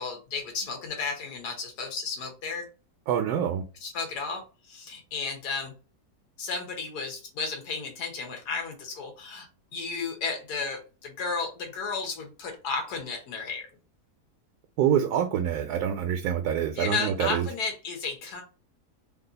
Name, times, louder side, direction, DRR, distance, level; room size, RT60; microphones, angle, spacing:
voice 1, 0.0-2.7 3.8-5.7 6.4-13.7 16.8-18.4, left 4 dB, 80° left, 3 dB, 1.6 m, -33 dB
voice 2, 3.1-3.6 14.8-17.5, right 9 dB, 75° right, 6 dB, 1.1 m, -26 dB
3.4 x 2.4 x 3.9 m, 0.33 s
omnidirectional pair, 1.7 m